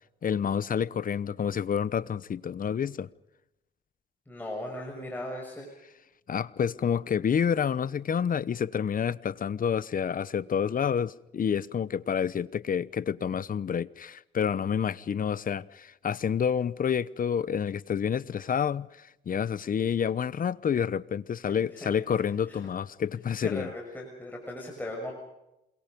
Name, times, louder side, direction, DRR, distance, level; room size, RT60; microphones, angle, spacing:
voice 1, 0.2-3.1 6.3-23.7, left 7 dB, 45° left, 1.0 m, -29 dB
voice 2, 4.3-5.7 21.8-21.9 22.5-22.6 23.4-25.1, left 1 dB, 10° left, 6.5 m, -37 dB
28.0 x 23.0 x 5.4 m
cardioid pair, 90°, 20 cm